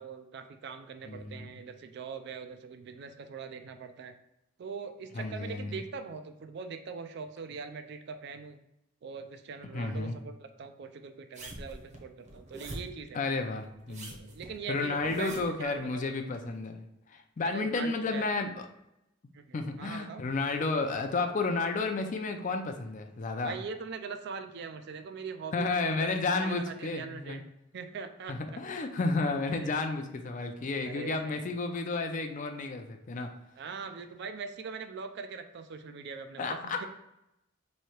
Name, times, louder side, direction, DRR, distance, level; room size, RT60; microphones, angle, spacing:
voice 1, 0.0-4.1 4.6-8.6 9.0-13.2 13.9-16.1 17.4-18.2 19.3-19.4 19.8-20.2 23.4-26.1 26.4-27.4 27.7-28.6 29.6-29.8 30.8-31.4 33.6-36.9, right 5 dB, 55° right, 8 dB, 0.4 m, -42 dB
voice 2, 1.0-1.6 5.1-5.8 9.7-10.2 13.1-14.1 14.7-18.7 19.5-23.6 25.5-27.4 28.3-33.3 36.4-36.9, left 3 dB, 40° left, 5 dB, 0.4 m, -32 dB
sound 1, 11.3-13.0 13.8-15.6 16.3-16.4, right 1 dB, 35° right, 0.8 m, -44 dB
3.2 x 2.7 x 4.3 m, 0.84 s
head